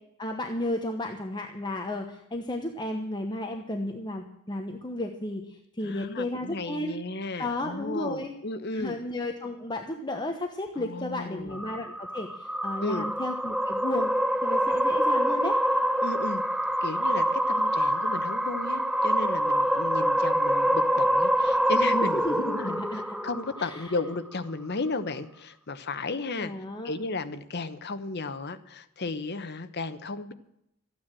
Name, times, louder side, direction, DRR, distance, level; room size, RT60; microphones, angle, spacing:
voice 1, 0.2-6.9 7.4-8.3 8.7-14.1 14.4-15.6 22.1-23.2 23.6-23.9 26.4-26.9, left 1 dB, 20° left, 4 dB, 1.0 m, -33 dB
voice 2, 5.8-9.0 10.8-11.6 12.8-13.1 16.0-16.4 16.8-22.8 23.2-26.5 26.8-30.3, left 3 dB, 55° left, 10 dB, 1.0 m, -34 dB
sound 1, 11.5-24.0, equal, 5° right, 0.5 m, -26 dB
14.0 x 9.4 x 7.6 m, 0.80 s
head